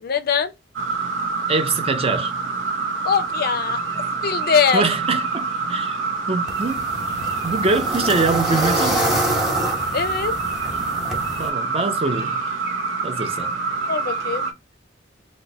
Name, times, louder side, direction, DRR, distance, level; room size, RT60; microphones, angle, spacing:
voice 1, 0.0-0.5 3.0-4.8 9.9-10.3 13.9-14.5, left 6 dB, 55° left, 0.4 m, -22 dB
sound 1, 0.8-14.5, right 4 dB, 85° right, 0.7 m, -26 dB
voice 2, 1.5-2.3 4.7-6.0 6.3-6.9 7.4-9.1 11.4-12.4 13.0-13.5, right 3 dB, 30° right, 0.5 m, -23 dB
sound 2, 6.5-11.5, right 1 dB, ahead, 0.9 m, -26 dB
2.9 x 2.1 x 3.8 m
head